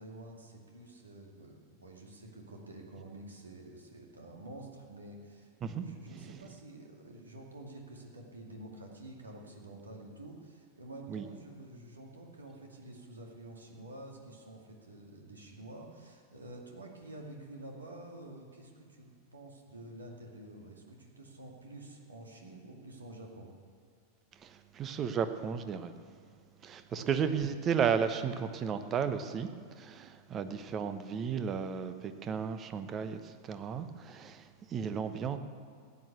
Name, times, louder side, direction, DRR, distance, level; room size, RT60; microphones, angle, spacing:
voice 1, 0.0-23.5 27.0-27.3, right 1 dB, 75° right, 1 dB, 2.3 m, -49 dB
voice 2, 5.6-6.4 11.1-11.2 24.4-25.9 26.6-29.5 29.8-35.4, right 7 dB, 30° right, 10 dB, 0.9 m, -34 dB
15.5 x 9.2 x 8.2 m, 2.2 s
figure-of-eight pair, 90°, 0 cm